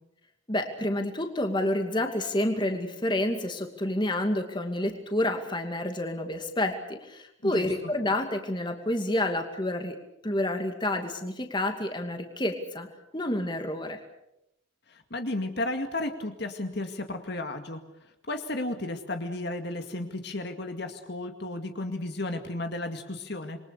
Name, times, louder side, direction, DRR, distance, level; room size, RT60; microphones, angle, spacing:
voice 1, 0.5-10.0 10.2-12.9 13.1-14.0, left 1 dB, 25° left, 5 dB, 2.4 m, -29 dB
voice 2, 14.9-17.8 18.3-23.6, left 2 dB, 55° left, 5 dB, 2.2 m, -33 dB
27.0 x 23.0 x 6.8 m, 0.84 s
head